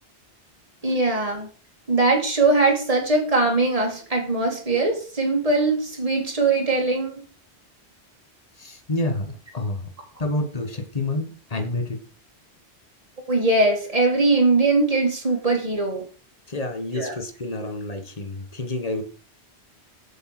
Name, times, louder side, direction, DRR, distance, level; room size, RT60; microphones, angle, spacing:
voice 1, 0.8-1.5 1.9-7.2 13.3-16.0 16.9-17.1, right 3 dB, 30° right, 1 dB, 2.8 m, -21 dB
voice 2, 8.6-9.9 10.2-12.0 16.5-19.0, left 2 dB, 35° left, 8 dB, 1.5 m, -28 dB
8.1 x 7.5 x 5.9 m, 0.40 s
omnidirectional pair, 1.1 m